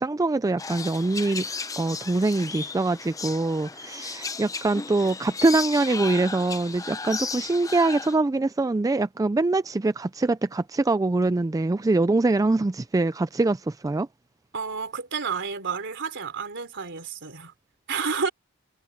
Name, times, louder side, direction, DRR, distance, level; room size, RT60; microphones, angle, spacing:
voice 1, 0.0-1.5 1.8-14.1, right 2 dB, 15° right, 0.3 m, -24 dB
sound 1, 0.6-8.2, left 4 dB, 15° left, 0.7 m, -35 dB
voice 2, 14.5-17.5 17.9-18.3, right 5 dB, 55° right, 3.8 m, -30 dB
head